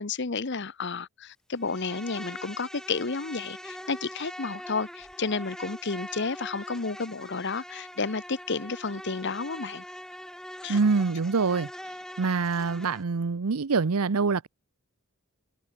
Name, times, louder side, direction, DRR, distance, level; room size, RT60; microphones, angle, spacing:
voice 1, 0.0-9.8 10.6-10.8, left 4 dB, 50° left, 0.9 m, -31 dB
Insect, 1.6-13.0, equal, 5° left, 5.0 m, -43 dB
voice 2, 10.7-11.7 12.2-14.5, right 4 dB, 85° right, 0.7 m, -25 dB
head